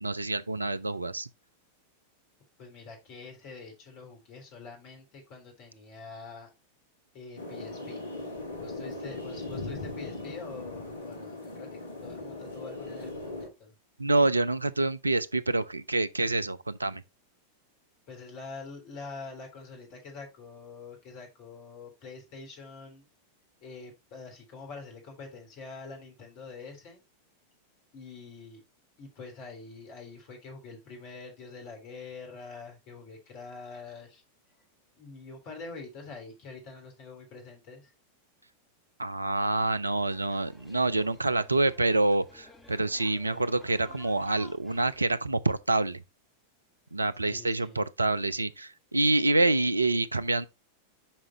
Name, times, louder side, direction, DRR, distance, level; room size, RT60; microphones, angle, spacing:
voice 1, 0.0-1.3 14.0-17.0 39.0-46.0 46.9-50.5, right 2 dB, 80° right, 0.5 m, -27 dB
voice 2, 2.6-6.5 7.1-8.0 8.6-11.7 12.0-13.7 18.1-23.1 23.6-27.0 27.9-28.6 29.0-34.2 35.0-37.9 47.2-47.8, left 4 dB, 40° left, 3.4 m, -45 dB
sound 1, 7.4-13.5, left 2 dB, 75° left, 1.6 m, -39 dB
sound 2, 39.9-45.1, left 2 dB, 10° left, 3.6 m, -53 dB
8.7 x 5.2 x 2.8 m
figure-of-eight pair, 90°, 0 cm